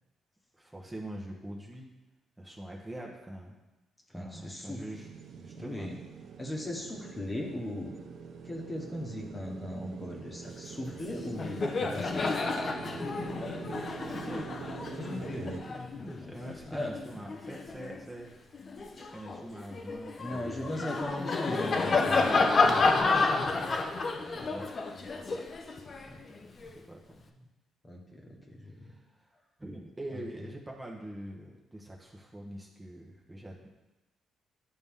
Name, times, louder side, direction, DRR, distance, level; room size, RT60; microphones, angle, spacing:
voice 1, 0.6-1.9 2.4-3.6 4.1-5.9 13.8-14.5 16.0-18.3 19.1-20.8 24.2-25.5 26.6-27.0 28.8-29.3 29.6-33.7, right 1 dB, 15° right, -2 dB, 1.1 m, -44 dB
voice 2, 4.1-4.8 5.6-6.0 6.4-7.9 8.4-12.3 15.0-15.8 16.7-16.9 20.2-22.9 26.1-26.2 26.6-26.7 27.8-29.0 30.1-30.5, left 1 dB, 25° left, 0 dB, 1.4 m, -38 dB
sound 1, 4.9-15.6, right 6 dB, 65° right, 0.6 m, -44 dB
Laughter, 10.9-11.0 11.3-18.0 18.5-26.7, left 3 dB, 45° left, 0.7 m, -30 dB
11.0 x 4.0 x 3.7 m, 1.0 s
cardioid pair, 90°, 0 cm